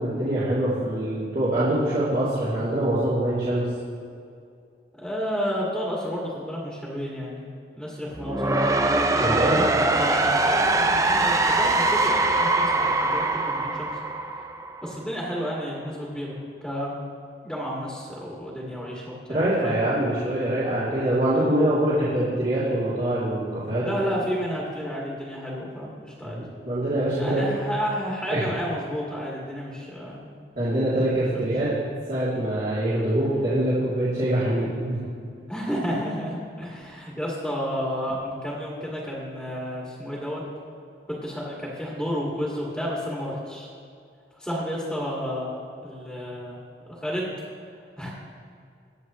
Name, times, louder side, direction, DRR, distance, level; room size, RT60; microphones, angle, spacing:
voice 1, 0.0-3.6 9.2-9.6 19.3-23.9 26.3-27.4 28.3-28.4 30.5-31.7 32.1-35.0, right 1 dB, 50° right, -12 dB, 3.0 m, -24 dB
voice 2, 4.9-7.5 7.8-8.7 9.4-13.9 14.8-16.4 16.6-16.9 17.4-19.8 23.8-26.4 27.2-30.3 35.5-40.4 41.1-43.7 44.4-45.6 45.8-46.6 46.8-47.3 48.0-48.1, equal, ahead, -5 dB, 2.1 m, -31 dB
sound 1, 8.1-15.1, right 2 dB, 20° right, 0.6 m, -22 dB
23.0 x 8.3 x 3.2 m, 2.4 s
head